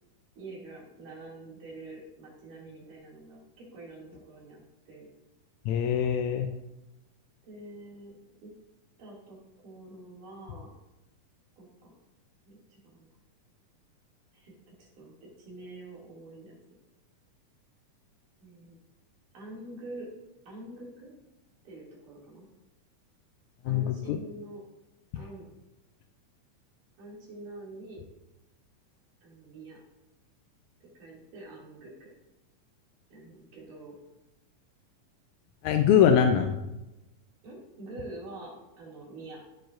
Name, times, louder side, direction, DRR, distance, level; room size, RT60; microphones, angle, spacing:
voice 1, 0.4-5.1 7.4-8.1 8.4-8.5 9.0-9.4 9.6-10.7 11.6-11.9 12.5-12.6 12.8-13.1 14.3-16.6 18.4-18.8 19.3-20.1 20.5-21.1 21.6-22.5 23.7-24.6 25.2-25.5 27.0-28.0 29.2-29.8 30.9-31.9 33.1-34.0 37.4-39.4, right 2 dB, 80° right, -4 dB, 4.2 m, -46 dB
voice 2, 5.7-6.5 23.7-24.2 35.6-36.5, left 8 dB, 80° left, 5 dB, 1.8 m, -23 dB
15.5 x 6.8 x 2.6 m, 0.98 s
omnidirectional pair, 3.7 m